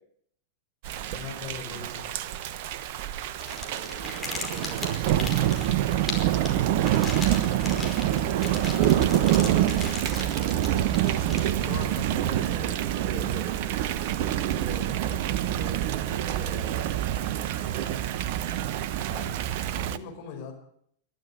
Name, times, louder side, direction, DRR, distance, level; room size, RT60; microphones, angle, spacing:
Thunder / Rain, 0.8-20.0, right 12 dB, 50° right, 1.0 m, -26 dB
voice 1, 1.0-2.1 11.4-12.7 14.8-14.9 19.0-19.4 19.7-20.5, left 7 dB, 45° left, 4 dB, 4.8 m, -41 dB
sound 1, 3.4-11.8, left 4 dB, 15° left, 5.1 m, -38 dB
voice 2, 3.4-5.0 7.6-9.3 12.5-12.7 12.9-17.0 17.6-18.0, right 2 dB, 30° right, 2 dB, 5.0 m, -44 dB
22.0 x 13.0 x 9.2 m, 0.68 s
figure-of-eight pair, 90°, 0 cm